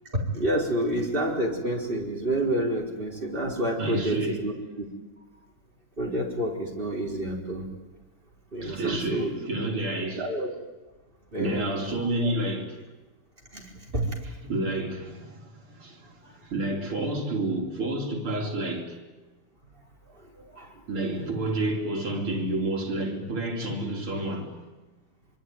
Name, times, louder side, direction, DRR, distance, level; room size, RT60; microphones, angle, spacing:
voice 1, 0.1-4.5 4.8-4.9 6.0-7.6 8.5-9.3 10.1-10.5 11.3-11.7 12.2-12.3 13.5-13.7 13.9-14.1, right 1 dB, 25° right, 4.8 m, -28 dB
voice 2, 3.8-4.5 8.6-10.3 11.4-12.8 14.4-16.1 16.4-19.0 20.9-24.6, right 1 dB, 75° right, 4.9 m, -29 dB
25.5 x 24.5 x 9.5 m
omnidirectional pair, 2.4 m